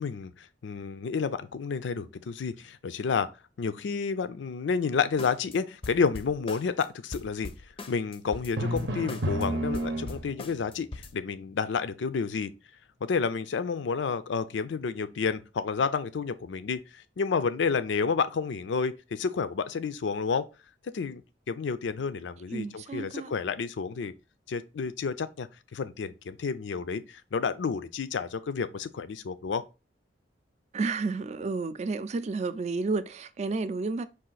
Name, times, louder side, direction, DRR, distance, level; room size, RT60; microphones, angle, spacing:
voice 1, 0.0-3.3 3.6-7.5 7.9-12.5 13.0-20.5 20.9-21.2 21.5-24.1 24.5-29.6, left 5 dB, 90° left, 0.4 m, -30 dB
sound 1, 5.2-5.6 5.8-6.8 7.1-9.4 9.7-11.1, left 3 dB, 30° left, 0.4 m, -41 dB
Drum, 8.6-10.6, right 1 dB, 80° right, 0.7 m, -31 dB
voice 2, 22.5-23.3 30.7-34.0, right 3 dB, 40° right, 0.3 m, -31 dB
4.9 x 2.4 x 3.9 m
head